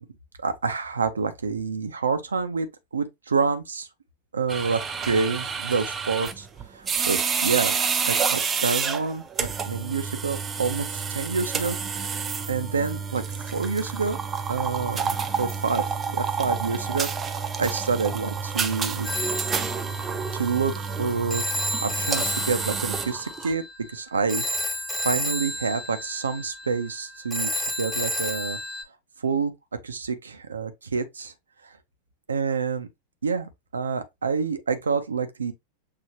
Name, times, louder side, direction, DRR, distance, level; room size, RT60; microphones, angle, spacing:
voice 1, 0.4-2.7 2.9-3.9 4.3-7.8 8.1-11.8 12.0-14.2 14.5-15.8 16.1-19.1 20.3-23.6 23.9-24.8 25.0-28.6 29.2-29.5 29.8-31.3 31.6-31.7 32.3-32.9 33.2-35.5, right 5 dB, 75° right, 0.6 m, -28 dB
sound 1, 4.5-23.5, right 6 dB, 20° right, 0.6 m, -29 dB
Telephone, 19.0-28.8, equal, 5° left, 1.2 m, -31 dB
6.6 x 2.7 x 2.8 m
figure-of-eight pair, 90°, 0 cm